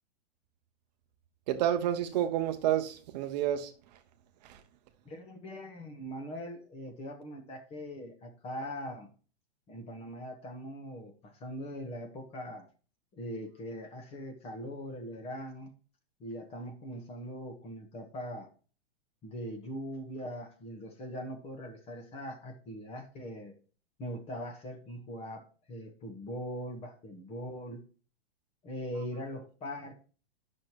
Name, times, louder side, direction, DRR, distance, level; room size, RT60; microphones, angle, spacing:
voice 1, 1.5-3.7 4.4-4.6, right 11 dB, 40° right, 0.8 m, -29 dB
voice 2, 5.0-9.1 9.7-12.7 13.1-15.7 16.2-18.5 19.2-23.6 24.0-27.8 28.6-29.9, equal, 20° left, 1.2 m, -41 dB
10.0 x 6.4 x 2.9 m
hypercardioid pair, 155°, 32 cm